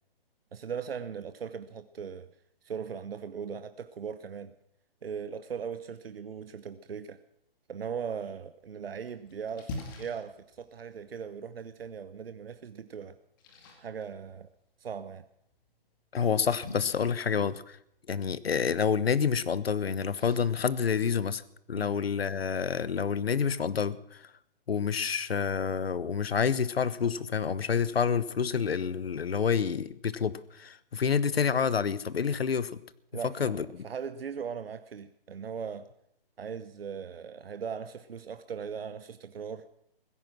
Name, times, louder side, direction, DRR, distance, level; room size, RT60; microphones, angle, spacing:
voice 1, 0.5-2.3 2.6-4.5 5.0-7.2 7.7-13.2 13.8-14.5 14.8-15.3 21.8-22.0 33.1-33.6 33.8-35.9 36.4-39.7, right 7 dB, 75° right, 1.0 m, -39 dB
Splash splatter, 8.6-21.6, left 2 dB, 20° left, 2.2 m, -49 dB
voice 2, 16.1-17.8 18.1-21.4 21.7-24.2 24.7-32.8 33.4-33.6, left 6 dB, 85° left, 1.1 m, -28 dB
16.5 x 13.5 x 6.1 m
hypercardioid pair, 170°, 30 cm